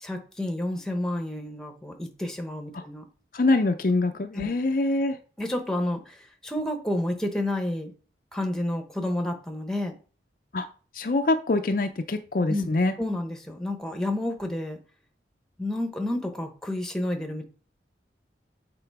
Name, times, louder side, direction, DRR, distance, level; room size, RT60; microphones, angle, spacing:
voice 1, 0.0-3.0 4.3-4.5 5.4-7.9 8.3-10.0 12.5-12.7 13.0-14.8 15.6-17.4, left 1 dB, 5° left, 4 dB, 0.9 m, -30 dB
voice 2, 3.3-5.2 10.5-10.7 11.0-12.9, left 2 dB, 50° left, 6 dB, 0.5 m, -24 dB
7.9 x 3.8 x 4.7 m, 0.39 s
head